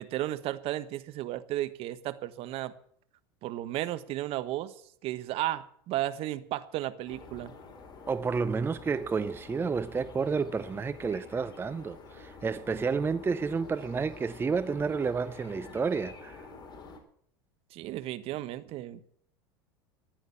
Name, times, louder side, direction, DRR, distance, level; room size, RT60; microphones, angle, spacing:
voice 1, 0.0-2.7 3.4-4.7 5.0-7.5 17.7-19.1, right 14 dB, 50° right, 1.3 m, -34 dB
sound 1, 7.1-17.0, left 4 dB, 35° left, 3.9 m, -48 dB
voice 2, 8.1-16.4, right 5 dB, 15° right, 0.6 m, -30 dB
15.0 x 10.5 x 7.1 m
hypercardioid pair, 85°, 13 cm